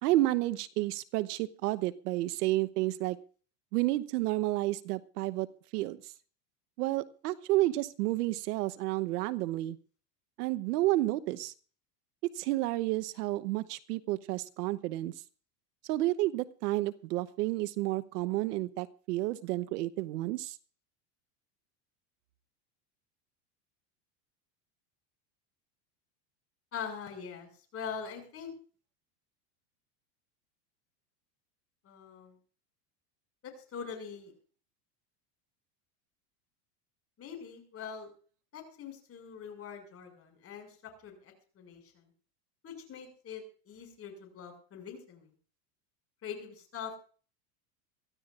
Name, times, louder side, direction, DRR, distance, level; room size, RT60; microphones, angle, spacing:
voice 1, 0.0-3.2 3.7-5.5 5.7-6.1 6.8-9.8 10.4-11.5 12.2-15.1 15.9-20.6, right 17 dB, 75° right, 14 dB, 1.1 m, -31 dB
voice 2, 26.7-28.5 31.8-32.4 33.4-34.3 37.2-38.1 38.5-40.8 41.0-42.1 42.6-45.3 46.2-47.0, left 7 dB, 30° left, 4 dB, 6.3 m, -43 dB
24.0 x 15.0 x 2.5 m, 0.39 s
supercardioid pair, 140°, 47 cm